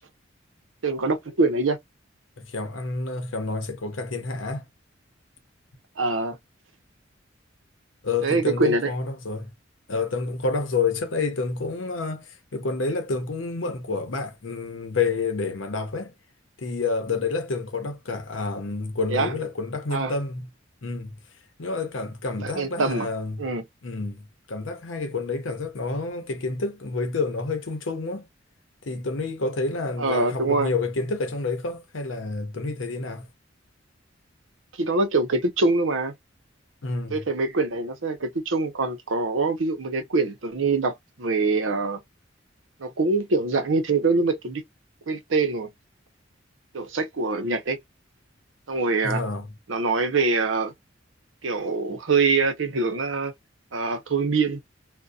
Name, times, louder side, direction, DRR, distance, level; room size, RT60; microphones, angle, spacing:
voice 1, 0.8-1.8 6.0-6.4 8.2-8.9 19.1-19.3 19.9-20.1 22.4-23.1 23.4-23.6 30.0-30.7 34.8-36.1 37.1-42.0 42.8-44.6 45.1-45.7 46.7-47.8 48.7-49.2 49.7-50.7 51.4-53.3 53.7-54.6, right 3 dB, 85° right, 0.7 m, -24 dB
voice 2, 2.4-4.6 8.0-9.5 9.9-16.1 16.6-20.5 20.8-21.2 21.6-23.5 23.8-28.3 28.8-33.3 36.8-37.3 49.0-49.5, left 3 dB, 85° left, 0.7 m, -29 dB
2.7 x 2.1 x 2.3 m
head